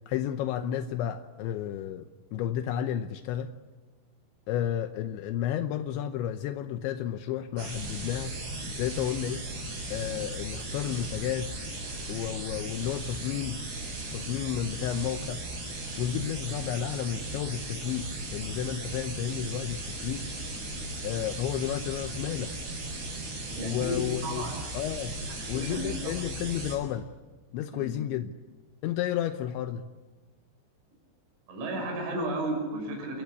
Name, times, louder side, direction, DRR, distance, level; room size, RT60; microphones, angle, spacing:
voice 1, 0.1-3.5 4.5-8.3 8.7-9.4 9.9-11.5 12.1-13.6 14.1-15.4 16.0-20.3 21.0-22.5 23.6-24.5 24.7-25.2 25.5-27.1 27.5-28.3 28.8-29.9, left 10 dB, 80° left, 8 dB, 3.2 m, -32 dB
sound 1, 7.6-26.8, right 2 dB, 60° right, 9.4 m, -37 dB
voice 2, 23.6-24.6 25.5-26.1 27.7-27.9 31.5-33.2, right 1 dB, 85° right, 2 dB, 9.1 m, -33 dB
29.0 x 21.0 x 8.4 m, 1.4 s
omnidirectional pair, 5.3 m